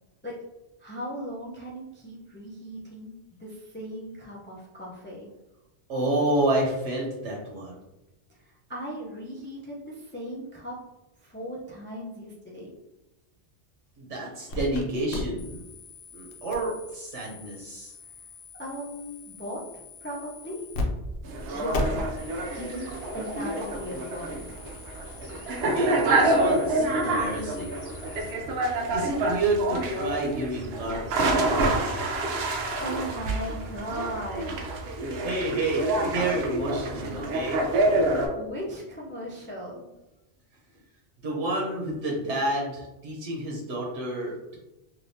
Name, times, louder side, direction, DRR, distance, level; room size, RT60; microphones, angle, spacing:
voice 1, 0.8-3.1 3.4-5.3 8.4-10.8 11.2-12.7 18.6-19.6 20.0-20.6 21.5-22.1 22.5-24.4 32.8-34.5 38.3-39.9, equal, 15° left, -4 dB, 0.4 m, -37 dB
voice 2, 5.9-7.8 14.0-15.6 16.1-17.9 25.6-27.7 28.9-32.1 35.2-37.6 41.2-44.6, right 2 dB, 90° right, -1 dB, 1.0 m, -30 dB
sound 1, 14.5-14.8 15.1-20.8 21.1-21.2 21.7-28.3, left 2 dB, 70° left, 0.9 m, -39 dB
sound 2, 21.2-38.3, right 2 dB, 70° right, 0.8 m, -27 dB
3.4 x 2.6 x 2.6 m, 0.96 s
omnidirectional pair, 1.1 m